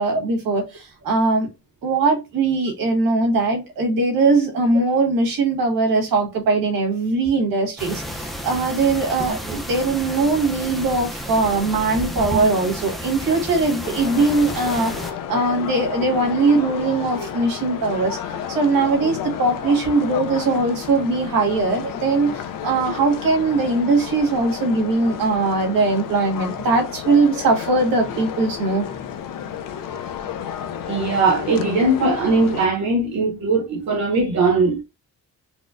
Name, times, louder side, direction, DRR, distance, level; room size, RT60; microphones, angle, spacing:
voice 1, 0.0-1.5 1.8-18.2 18.5-28.9, right 3 dB, 75° right, 1.6 m, -20 dB
sound 1, 7.8-15.1, equal, ahead, 0.5 m, -31 dB
sound 2, 13.8-32.7, left 9 dB, 70° left, 0.5 m, -32 dB
voice 2, 30.9-34.8, right 3 dB, 50° right, 0.9 m, -20 dB
4.3 x 2.1 x 2.5 m
cardioid pair, 130°, 35 cm